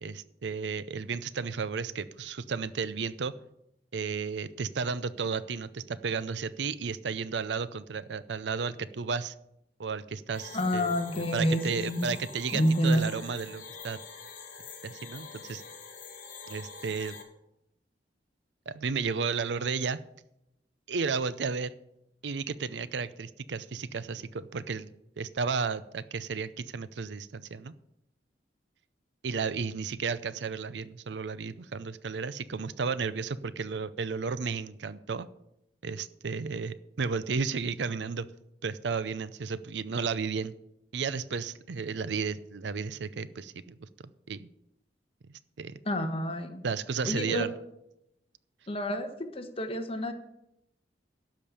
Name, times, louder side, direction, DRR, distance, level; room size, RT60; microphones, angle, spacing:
voice 1, 0.0-3.3 3.9-9.3 9.8-14.0 14.8-15.6 16.5-17.2 18.7-20.0 20.9-21.7 22.2-27.7 29.2-35.3 35.8-38.3 38.6-40.5 40.9-44.5 45.6-45.8 46.6-47.5, right 5 dB, 70° right, 16 dB, 0.5 m, -33 dB
sound 1, 10.3-17.2, left 5 dB, 50° left, 1.9 m, -45 dB
voice 2, 10.5-12.1 12.5-13.0 45.9-46.6 47.0-47.5 48.7-50.1, equal, 35° left, 6 dB, 1.3 m, -28 dB
12.0 x 5.2 x 8.6 m, 0.82 s
head